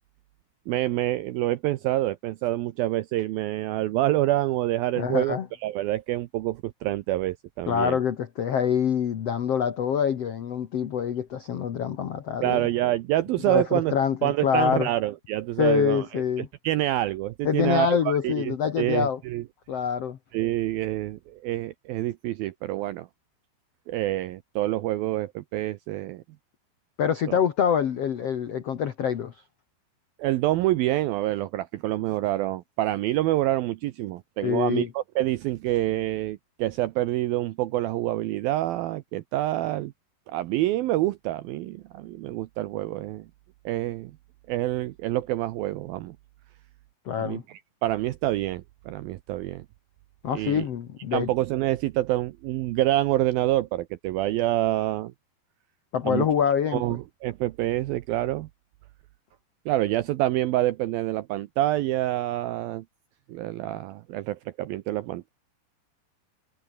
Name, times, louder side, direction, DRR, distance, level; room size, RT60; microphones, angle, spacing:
voice 1, 0.7-8.0 12.4-14.0 14.2-19.4 20.3-23.1 23.9-26.2 27.3-27.4 30.2-39.9 40.3-43.3 43.7-44.1 44.5-46.2 47.2-49.7 50.3-50.7 51.1-55.1 56.0-56.3 56.7-58.5 59.7-62.8 63.3-65.3, right 15 dB, 80° right, 2.1 m, -27 dB
voice 2, 5.0-5.5 7.7-12.6 13.5-14.9 15.6-16.5 17.4-19.2 19.7-20.2 27.0-29.3 34.4-34.9 47.0-47.4 50.2-51.3 55.9-56.8, left 8 dB, 85° left, 1.3 m, -25 dB
omnidirectional pair, 5.1 m